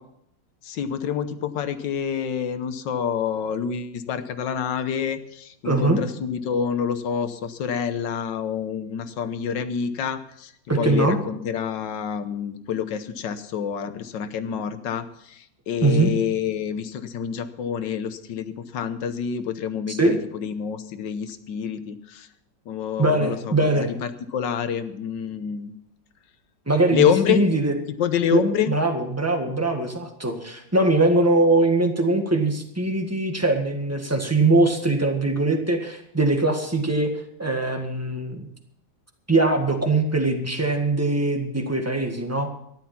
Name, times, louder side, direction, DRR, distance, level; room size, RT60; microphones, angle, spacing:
voice 1, 0.6-22.3 22.7-25.7 26.9-27.4 28.0-28.7, left 8 dB, 75° left, 11 dB, 1.6 m, -27 dB
voice 2, 5.6-6.0 10.7-11.2 15.8-16.1 19.9-20.1 23.0-23.9 26.7-27.7 28.3-28.4 28.7-37.1 37.4-38.5 39.3-42.5, right 2 dB, 10° right, 4 dB, 1.5 m, -21 dB
13.5 x 11.5 x 5.9 m, 0.73 s
omnidirectional pair, 2.0 m